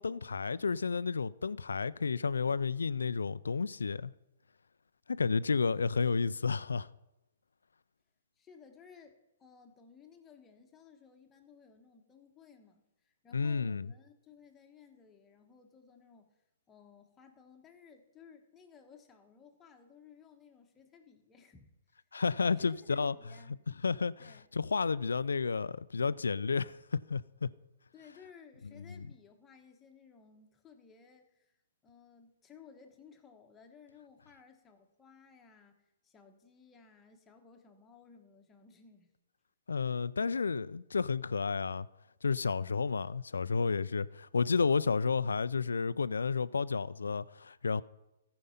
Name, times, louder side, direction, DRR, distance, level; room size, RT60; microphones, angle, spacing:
voice 1, 0.0-4.1 5.1-6.9 13.3-13.9 22.1-23.1 23.8-24.3 24.5-26.8 27.1-27.5 39.7-41.9 42.2-47.8, left 5 dB, 85° left, 0.4 m, -31 dB
voice 2, 8.4-16.3 16.7-21.7 22.6-23.6 24.2-24.5 27.9-31.6 31.8-39.1, left 6 dB, 15° left, 1.3 m, -58 dB
14.0 x 5.3 x 5.7 m
hypercardioid pair, 135°, 0 cm